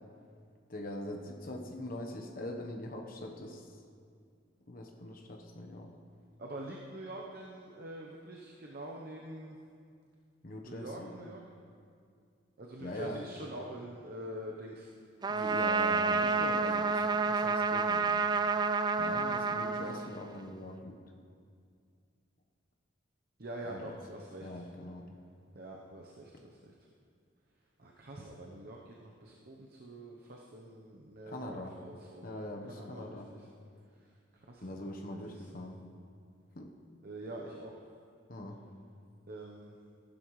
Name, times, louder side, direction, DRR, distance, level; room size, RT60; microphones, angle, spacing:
voice 1, 0.7-3.8 4.7-5.9 10.4-11.1 12.8-13.2 15.3-18.2 19.0-21.0 23.6-23.9 24.4-25.1 31.3-31.8 32.2-33.3 34.6-35.8 36.5-36.7 38.3-38.6, left 1 dB, 45° left, 2 dB, 1.1 m, -42 dB
voice 2, 6.4-9.6 10.6-11.4 12.6-14.9 15.3-15.6 23.4-24.6 25.5-26.7 27.8-32.2 32.7-33.5 34.0-35.5 37.0-37.8 39.3-39.8, right 1 dB, 50° right, -2 dB, 0.8 m, -45 dB
Trumpet, 15.2-20.5, right 4 dB, 20° right, 0.3 m, -29 dB
15.0 x 11.5 x 3.2 m, 2.2 s
head